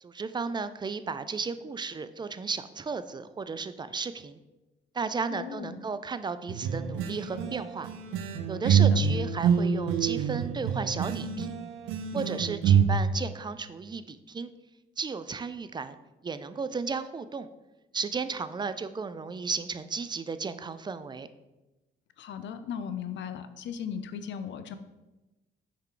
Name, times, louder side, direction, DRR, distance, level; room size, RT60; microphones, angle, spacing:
voice 1, 0.0-4.4 4.9-7.9 8.5-11.5 12.1-14.5 15.0-16.0 16.2-17.5 17.9-21.3, right 5 dB, 20° right, 12 dB, 0.3 m, -34 dB
voice 2, 5.3-5.9 8.6-8.9 22.2-24.8, left 7 dB, 65° left, 10 dB, 0.5 m, -37 dB
sound 1, 6.5-12.8, right 7 dB, 90° right, 0.5 m, -26 dB
5.7 x 4.6 x 3.8 m, 1.1 s
cardioid pair, 90°, 20 cm